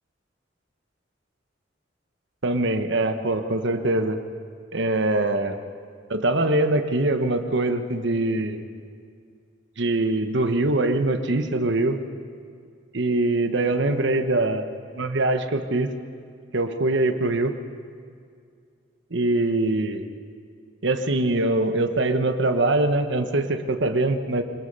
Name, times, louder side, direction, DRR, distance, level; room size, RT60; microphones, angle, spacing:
voice 1, 2.4-4.2 4.7-5.6 6.1-8.6 9.8-12.0 12.9-14.7 14.9-15.9 16.5-17.5 19.1-20.1 20.8-24.4, right 2 dB, 65° right, 7 dB, 1.2 m, -23 dB
24.5 x 21.0 x 5.5 m, 2.2 s
head